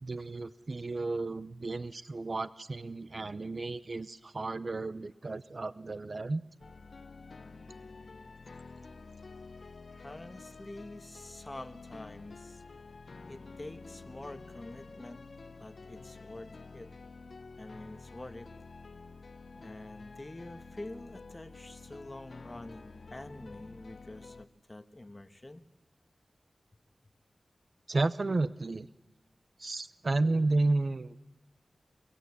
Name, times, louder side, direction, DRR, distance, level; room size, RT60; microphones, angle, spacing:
voice 1, 0.0-6.4 27.9-28.9 29.6-31.2, right 2 dB, 50° right, 16 dB, 0.8 m, -32 dB
sound 1, 6.6-24.5, left 4 dB, 65° left, 1.1 m, -49 dB
voice 2, 9.9-12.6 13.2-15.2 15.6-16.9 17.6-18.5 19.5-25.6, left 1 dB, 25° left, 10 dB, 1.4 m, -46 dB
23.5 x 22.0 x 8.5 m, 1.1 s
wide cardioid pair, 70°, 0 cm